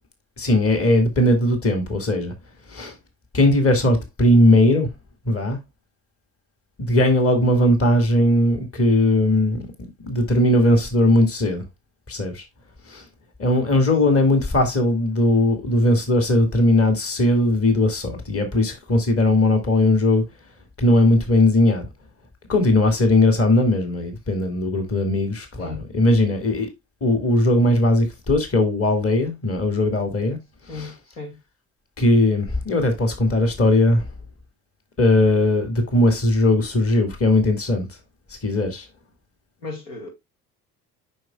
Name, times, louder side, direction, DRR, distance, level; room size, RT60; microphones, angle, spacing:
voice 1, 0.4-2.3 2.7-3.0 3.3-4.9 5.3-5.6 6.8-9.7 10.0-11.6 12.1-12.4 12.9-13.1 13.4-20.2 20.8-21.9 22.5-26.7 27.0-30.4 30.7-30.9 32.0-34.1 35.0-37.9 38.4-38.9, left 1 dB, 30° left, 2.1 m, -19 dB
voice 2, 30.7-31.4 39.6-40.1, left 4 dB, 70° left, 2.5 m, -35 dB
9.1 x 5.7 x 2.3 m
figure-of-eight pair, 55°, 47 cm